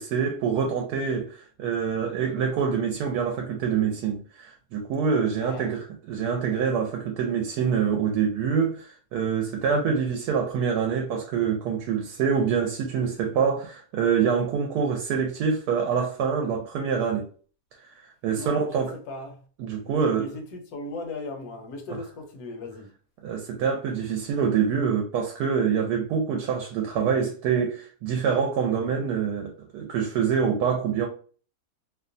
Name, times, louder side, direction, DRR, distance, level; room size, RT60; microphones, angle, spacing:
voice 1, 0.0-17.3 18.0-18.9 19.6-20.3 23.2-31.1, right 6 dB, 80° right, 1.1 m, -26 dB
voice 2, 5.3-5.8 18.4-19.5 19.8-22.9, left 2 dB, 70° left, 1.2 m, -38 dB
2.9 x 2.1 x 2.5 m
omnidirectional pair, 1.7 m